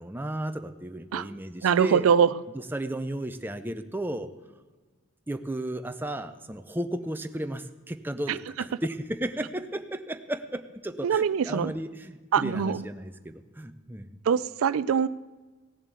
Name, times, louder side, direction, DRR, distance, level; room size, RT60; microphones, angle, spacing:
voice 1, 0.0-2.1 2.5-4.3 5.3-14.2, right 1 dB, 10° right, 8 dB, 0.6 m, -34 dB
voice 2, 1.6-2.3 8.3-8.4 11.0-11.7 12.3-12.8 14.3-15.1, right 7 dB, 85° right, 17 dB, 0.4 m, -23 dB
16.5 x 7.3 x 8.2 m, 1.3 s
head